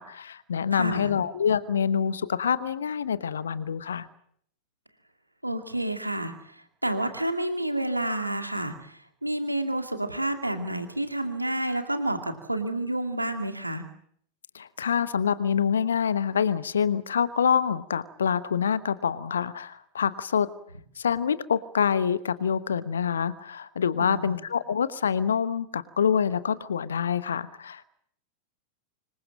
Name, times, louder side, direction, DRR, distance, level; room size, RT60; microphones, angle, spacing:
voice 1, 0.0-4.1 14.5-20.5 21.0-27.8, left 7 dB, 70° left, 15 dB, 1.1 m, -26 dB
voice 2, 0.7-1.2 5.4-13.8 24.0-24.4, right 1 dB, 85° right, 7 dB, 2.3 m, -30 dB
26.0 x 22.0 x 7.5 m, 0.65 s
figure-of-eight pair, 90°, 0 cm